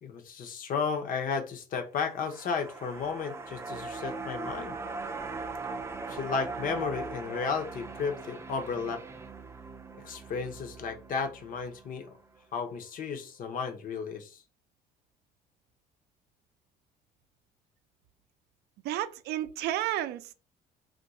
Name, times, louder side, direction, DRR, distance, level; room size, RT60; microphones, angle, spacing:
voice 1, 0.0-4.8 6.1-9.0 10.0-12.2 12.5-14.4, left 5 dB, 55° left, 0.8 m, -33 dB
sound 1, 2.0-12.4 12.7-12.8, right 3 dB, 15° right, 0.4 m, -40 dB
voice 2, 18.8-20.3, right 13 dB, 75° right, 0.4 m, -31 dB
2.5 x 2.3 x 4.1 m
cardioid pair, 110°, 17 cm